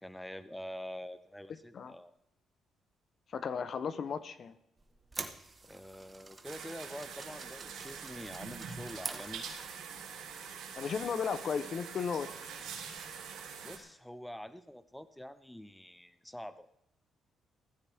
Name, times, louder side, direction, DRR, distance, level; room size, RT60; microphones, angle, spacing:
voice 1, 0.0-2.1 5.6-9.4 10.8-11.4 13.6-16.7, equal, 5° left, 12 dB, 0.8 m, -46 dB
voice 2, 3.3-4.5 10.7-12.6, left 6 dB, 55° left, 13 dB, 1.0 m, -35 dB
sound 1, 4.8-9.9, right 3 dB, 25° right, 1.6 m, -46 dB
sound 2, 6.4-13.8, right 6 dB, 85° right, 3.8 m, -45 dB
17.0 x 15.0 x 3.7 m, 0.79 s
cardioid pair, 90°, 0 cm